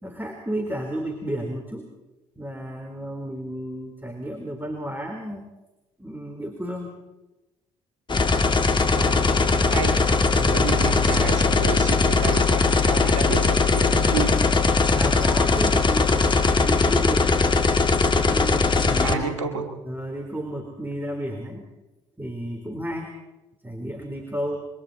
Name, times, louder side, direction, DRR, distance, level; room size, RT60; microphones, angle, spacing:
voice 1, 0.0-1.9 2.4-5.5 6.0-7.0 10.3-10.7 14.9-17.5 18.1-21.7 22.2-23.1 23.6-24.7, equal, 10° right, 3 dB, 4.0 m, -32 dB
sound 1, 8.1-19.1, left 4 dB, 30° left, 2.6 m, -20 dB
voice 2, 8.9-10.1 10.4-14.4 19.0-19.7, right 5 dB, 85° right, 6 dB, 2.4 m, -30 dB
27.0 x 23.5 x 4.2 m, 1.0 s
hypercardioid pair, 50°, 16 cm